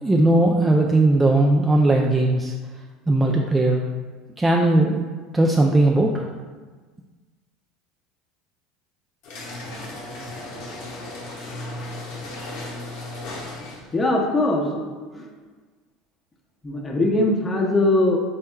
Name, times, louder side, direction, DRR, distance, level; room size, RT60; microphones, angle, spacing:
voice 1, 0.0-2.5 3.1-3.8 4.4-5.0 5.3-6.3, right 2 dB, 10° right, -1 dB, 0.3 m, -18 dB
sound 1, 9.2-14.0, left 2 dB, 70° left, 0.8 m, -35 dB
voice 2, 13.9-14.8 15.1-15.3 16.6-18.2, left 2 dB, 20° left, 0 dB, 0.7 m, -21 dB
4.3 x 3.5 x 2.2 m, 1.4 s
supercardioid pair, 100°, 0 cm